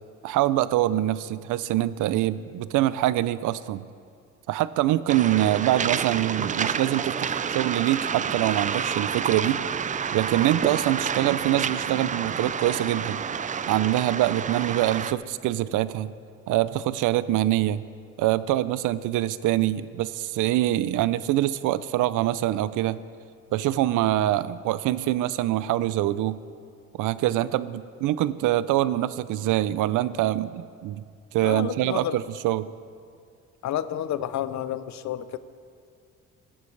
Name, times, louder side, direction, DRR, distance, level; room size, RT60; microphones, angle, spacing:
voice 1, 0.2-3.8 4.5-9.6 10.1-13.2 13.7-16.1 16.5-17.8 18.2-23.0 23.5-26.4 27.0-31.0 31.3-32.7, right 14 dB, 85° right, 16 dB, 0.5 m, -24 dB
Waves surf, 5.1-15.1, right 7 dB, 25° right, 0.3 m, -29 dB
voice 2, 31.4-32.2 33.6-35.4, left 11 dB, 65° left, 14 dB, 0.6 m, -30 dB
18.0 x 11.5 x 3.3 m, 2.3 s
cardioid pair, 90°, 30 cm